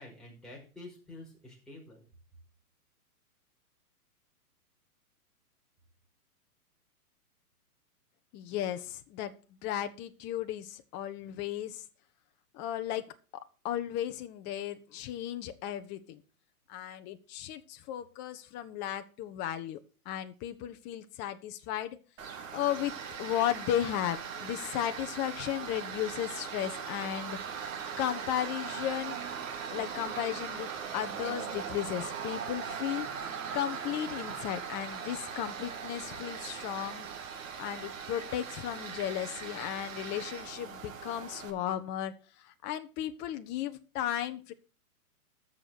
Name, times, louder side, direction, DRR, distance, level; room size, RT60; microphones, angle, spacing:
voice 1, 0.0-2.0, left 2 dB, ahead, -4 dB, 5.2 m, -48 dB
voice 2, 8.3-9.4 9.6-11.8 12.5-13.0 13.6-16.2 16.7-19.8 20.0-22.0 22.5-22.9 23.2-27.4 28.0-29.2 29.7-30.7 30.9-33.1 33.5-37.1 37.6-42.1 42.4-44.5, left 11 dB, 25° left, 8 dB, 1.0 m, -35 dB
Tools, 22.2-41.5, right 6 dB, 55° right, 3.4 m, -40 dB
13.5 x 6.7 x 5.9 m, 0.35 s
hypercardioid pair, 140°, 46 cm